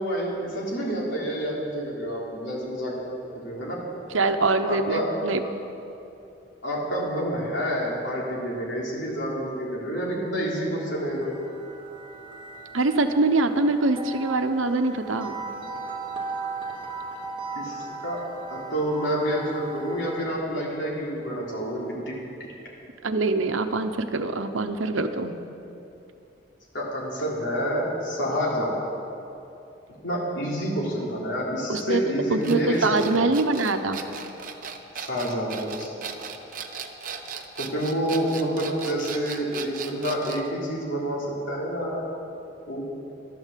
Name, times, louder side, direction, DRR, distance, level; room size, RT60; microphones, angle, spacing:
voice 1, 0.0-2.9 3.3-3.8 4.7-5.1 6.6-11.3 17.5-18.2 18.5-22.5 26.7-28.7 30.0-33.3 35.0-36.0 37.6-42.0 42.7-42.8, equal, 70° left, -4 dB, 3.8 m, -28 dB
voice 2, 4.1-5.4 12.7-15.3 23.0-25.4 31.7-32.0 32.3-34.0, right 3 dB, 90° right, 8 dB, 0.9 m, -24 dB
sound 1, 11.0-20.4, right 4 dB, 25° right, 1.4 m, -37 dB
sound 2, 32.4-40.5, right 6 dB, 45° right, 0.9 m, -37 dB
12.5 x 12.5 x 7.5 m, 2.8 s
head